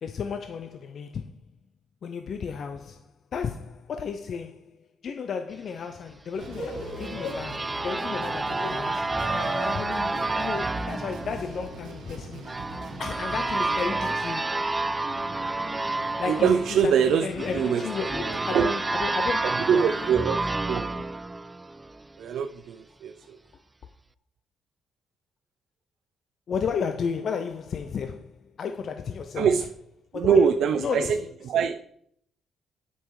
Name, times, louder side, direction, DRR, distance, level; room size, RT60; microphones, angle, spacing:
voice 1, 0.0-1.4 2.0-4.8 5.0-9.1 9.6-12.5 13.0-14.6 16.2-16.5 16.8-19.6 26.5-29.5 30.1-30.5 30.8-31.2, left 6 dB, 45° left, 0.6 m, -33 dB
sound 1, 6.3-20.1, left 2 dB, 90° left, 2.8 m, -42 dB
sound 2, 6.4-22.1, right 2 dB, 15° right, 0.3 m, -30 dB
sound 3, 6.4-14.1, right 3 dB, 80° right, 1.8 m, -44 dB
voice 2, 16.3-17.8 18.2-18.7 19.4-20.4 20.7-20.8 22.2-23.4 29.4-29.6 30.1-31.2 31.4-31.9, right 7 dB, 65° right, 0.6 m, -23 dB
11.0 x 5.5 x 4.8 m
cardioid pair, 135°, 0 cm